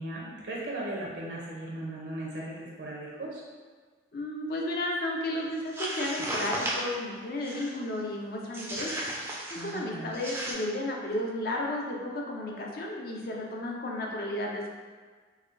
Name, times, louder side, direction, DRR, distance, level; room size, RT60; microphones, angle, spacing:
voice 1, 0.0-3.4 9.5-10.1, right 1 dB, 70° right, -4 dB, 0.5 m, -37 dB
voice 2, 4.1-8.9 9.5-14.8, left 1 dB, 55° left, -1 dB, 0.5 m, -33 dB
sound 1, 5.6-6.9 7.4-7.8 8.5-9.8 10.1-10.5, right 1 dB, 15° right, 0.3 m, -35 dB
4.1 x 2.2 x 2.5 m, 1.5 s
head